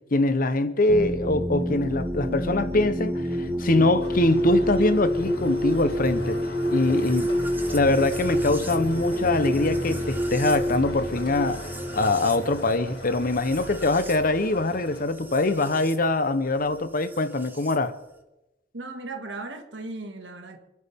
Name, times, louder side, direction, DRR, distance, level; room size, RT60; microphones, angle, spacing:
voice 1, 0.1-6.4 6.7-7.3 7.7-11.7 11.9-17.9, left 2 dB, 50° left, 1.0 m, -23 dB
sound 1, 0.9-16.0 17.1-17.8, equal, 10° right, 1.3 m, -29 dB
sound 2, 4.0-15.0, left 2 dB, 85° left, 6.2 m, -41 dB
voice 2, 18.7-20.6, right 2 dB, 90° right, 2.1 m, -36 dB
27.0 x 11.0 x 3.7 m
head